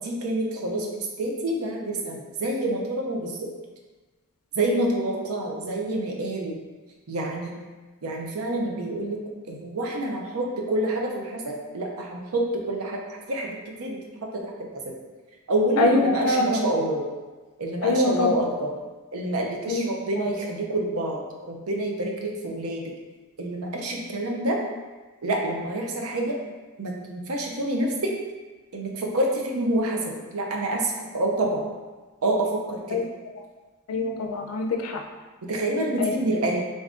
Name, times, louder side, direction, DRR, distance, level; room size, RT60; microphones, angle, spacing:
voice 1, 0.0-3.3 4.6-6.6 7.1-7.5 8.0-9.2 9.5-13.0 13.3-14.0 14.3-14.4 15.5-17.0 17.6-18.7 19.1-21.2 21.5-22.8 23.4-24.6 25.2-26.4 26.8-28.1 28.7-31.7 32.2-33.0 35.5-36.6, right 1 dB, 85° right, 0 dB, 0.6 m, -27 dB
voice 2, 15.8-16.6 17.8-18.4 19.7-19.9 20.2-20.3 32.9-33.0 33.9-35.0 36.0-36.1, left 2 dB, 80° left, 2 dB, 0.4 m, -23 dB
3.5 x 2.6 x 3.6 m, 1.3 s
head